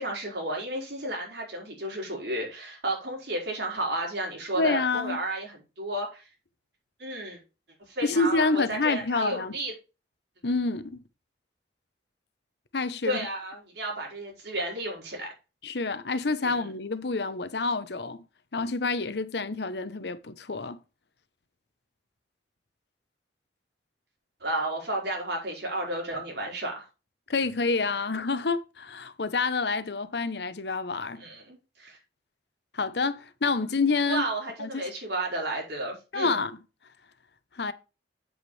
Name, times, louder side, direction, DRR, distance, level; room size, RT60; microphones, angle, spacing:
voice 1, 0.0-6.3 7.0-7.4 7.9-9.7 13.0-15.3 16.4-16.6 24.4-26.8 31.2-32.0 34.1-36.4, right 1 dB, 70° right, 4.8 m, -32 dB
voice 2, 4.5-5.2 8.0-9.5 10.4-11.0 12.7-13.2 15.6-18.2 18.5-20.8 27.3-31.2 32.7-34.3 34.6-34.8 36.1-36.6 37.5-37.7, left 3 dB, 65° left, 0.8 m, -28 dB
8.1 x 8.0 x 3.3 m
head